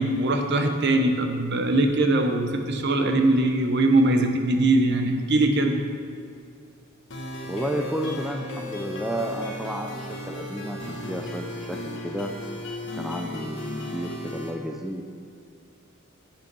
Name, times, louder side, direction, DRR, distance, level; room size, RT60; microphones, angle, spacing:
voice 1, 0.0-5.8, right 2 dB, 55° right, 4 dB, 0.9 m, -21 dB
sound 1, 7.1-14.5, left 1 dB, 60° left, 1.5 m, -35 dB
voice 2, 7.4-12.3 12.9-15.0, equal, ahead, 2 dB, 0.4 m, -32 dB
8.7 x 5.8 x 6.1 m, 2.3 s
head